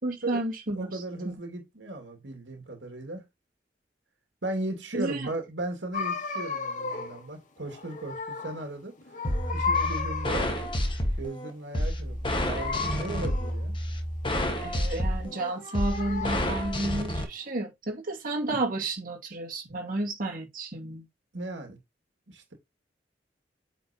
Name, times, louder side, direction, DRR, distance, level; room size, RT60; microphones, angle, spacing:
voice 1, 0.0-1.4 4.9-5.3 14.6-21.0, right 2 dB, 50° right, 2.3 m, -32 dB
voice 2, 0.8-3.2 4.4-9.0 9.5-10.7 11.2-13.8 21.3-21.8 22.3-22.5, right 2 dB, 85° right, 2.2 m, -36 dB
sound 1, 5.9-7.3 7.6-8.7 9.0-10.5 12.5-13.6 15.2-16.7, left 5 dB, 45° left, 1.5 m, -34 dB
sound 2, 9.2-17.2, left 1 dB, 30° left, 1.5 m, -29 dB
8.7 x 5.1 x 2.9 m
head